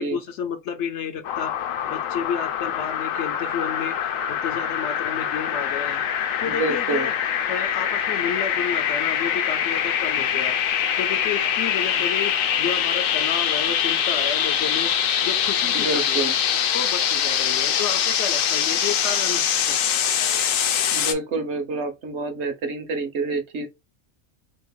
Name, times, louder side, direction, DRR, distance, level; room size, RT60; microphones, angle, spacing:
voice 1, 0.0-1.5 1.9-6.1 6.4-7.1 7.5-10.6 11.0-14.9 15.2-16.2 16.7-19.8, left 7 dB, 65° left, 0.9 m, -31 dB
sound 1, 1.2-21.1, left 9 dB, 90° left, 1.0 m, -24 dB
voice 2, 6.4-7.1 12.0-12.1 15.6-16.4 20.9-23.7, right 3 dB, 65° right, 0.9 m, -28 dB
2.9 x 2.4 x 3.6 m
omnidirectional pair, 1.4 m